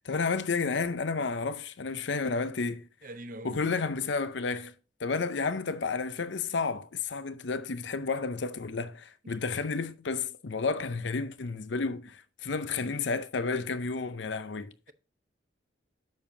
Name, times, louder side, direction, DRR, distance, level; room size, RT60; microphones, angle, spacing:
voice 1, 0.0-2.9 3.4-4.7 5.0-14.7, left 4 dB, 70° left, 0.6 m, -31 dB
voice 2, 3.0-3.8 9.2-9.4, right 1 dB, 45° right, 0.6 m, -44 dB
10.5 x 7.1 x 2.7 m
head